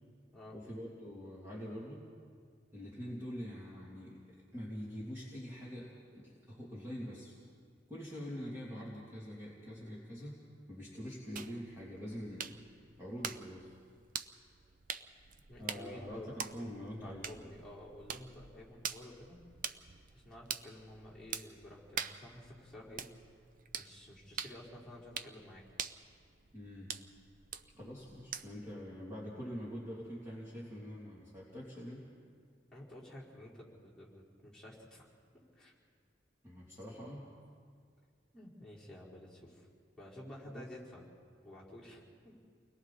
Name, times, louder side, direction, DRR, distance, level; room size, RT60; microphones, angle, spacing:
voice 1, 0.5-2.1 2.7-4.2 4.5-7.4 7.9-10.4 10.7-12.5 13.0-13.7 15.6-17.6 26.5-26.9 27.7-32.1 36.4-37.3 40.5-40.7, equal, 15° right, -7 dB, 2.9 m, -45 dB
sound 1, 11.4-28.7, right 7 dB, 45° right, 0.6 m, -46 dB
voice 2, 15.5-16.3 17.0-19.4 20.1-23.3 23.8-25.6 32.7-35.1 35.5-35.7 38.3-39.7 40.0-41.1 41.4-42.4, left 1 dB, 5° left, -8 dB, 4.5 m, -51 dB
29.5 x 21.5 x 4.2 m, 2.1 s
head